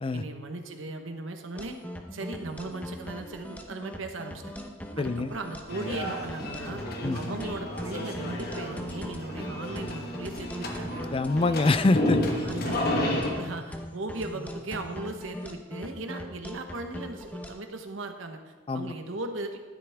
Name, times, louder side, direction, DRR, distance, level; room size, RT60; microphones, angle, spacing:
voice 1, 0.1-1.8 2.1-4.5 5.0-6.8 7.1-11.0 12.4-19.6, right 2 dB, 75° right, 6 dB, 1.1 m, -37 dB
sound 1, 1.5-17.5, equal, 10° left, 0.8 m, -40 dB
voice 2, 5.0-5.3 7.0-7.2 11.1-12.2 18.7-18.9, left 2 dB, 25° left, 12 dB, 0.3 m, -24 dB
sound 2, 5.7-13.3, left 1 dB, 50° left, 1.4 m, -32 dB
12.0 x 9.9 x 3.5 m, 1.4 s
head